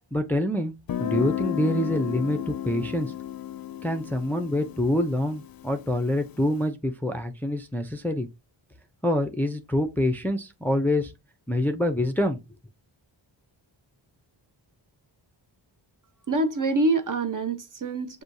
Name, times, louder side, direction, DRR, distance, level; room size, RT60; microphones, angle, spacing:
voice 1, 0.1-0.7 1.0-3.1 3.8-8.3 9.0-11.1 11.5-12.4, left 1 dB, 5° left, 0.5 m, -26 dB
Guitar, 0.9-6.4, left 12 dB, 50° left, 0.5 m, -33 dB
voice 2, 16.3-18.2, right 2 dB, 40° right, 0.9 m, -25 dB
6.1 x 2.7 x 2.6 m
cardioid pair, 70°, 46 cm